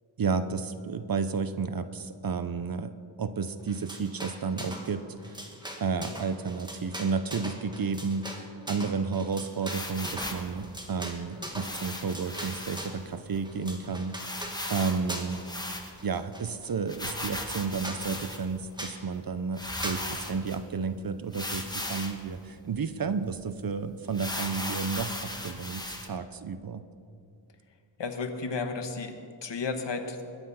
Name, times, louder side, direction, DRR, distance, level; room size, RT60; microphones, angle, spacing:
voice 1, 0.2-2.9 3.2-5.4 5.8-14.2 14.7-15.4 16.0-26.8, right 5 dB, 45° right, 11 dB, 0.7 m, -32 dB
sound 1, 3.7-4.9 5.2-13.0 13.4-14.6 15.1-15.5 15.8-16.7 17.2-17.3 17.5-17.6 17.8-18.0 18.8-19.0 19.8-20.0, right 1 dB, 10° right, 1.7 m, -40 dB
sound 2, 9.7-10.5 11.5-12.9 13.3-13.4 13.6-13.7 14.2-16.2 16.9-18.6 19.2-19.3 19.5-20.6 21.3-22.2 22.7-22.8 23.2-23.3 24.1-26.1, left 1 dB, 10° left, 1.3 m, -37 dB
voice 2, 28.0-30.2, left 4 dB, 60° left, 6 dB, 1.4 m, -33 dB
21.0 x 9.8 x 5.6 m, 2.4 s
wide cardioid pair, 140°, 48 cm